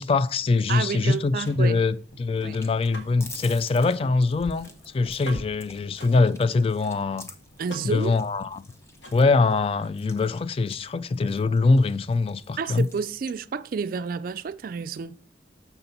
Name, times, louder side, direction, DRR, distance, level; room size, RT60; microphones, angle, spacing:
voice 1, 0.0-4.7 4.9-7.3 7.8-8.6 9.1-12.9, left 3 dB, 30° left, 0.3 m, -23 dB
voice 2, 0.7-1.8 2.4-2.6 7.6-8.1 12.6-15.2, right 5 dB, 50° right, 0.3 m, -30 dB
Car / Mechanisms, 1.0-9.6, right 1 dB, 85° left, 1.8 m, -47 dB
sound 1, 1.2-13.1, left 1 dB, 15° left, 0.8 m, -47 dB
7.0 x 5.6 x 4.0 m
head